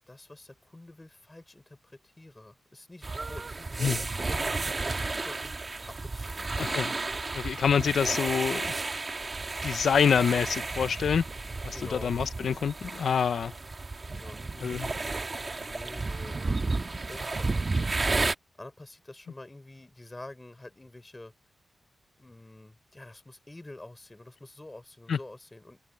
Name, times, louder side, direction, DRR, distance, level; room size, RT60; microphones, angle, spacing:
voice 1, 0.1-4.4 4.8-6.6 11.7-12.1 14.1-18.0 18.6-21.3 22.2-25.8, left 2 dB, 15° left, 3.9 m, -48 dB
sound 1, 3.0-18.3, right 3 dB, 30° right, 1.6 m, -32 dB
voice 2, 6.6-6.9 7.3-8.7 9.6-11.2 11.6-13.5 14.6-14.8 25.1-25.2, left 7 dB, 80° left, 0.6 m, -26 dB
wide cardioid pair, 120°, 0 cm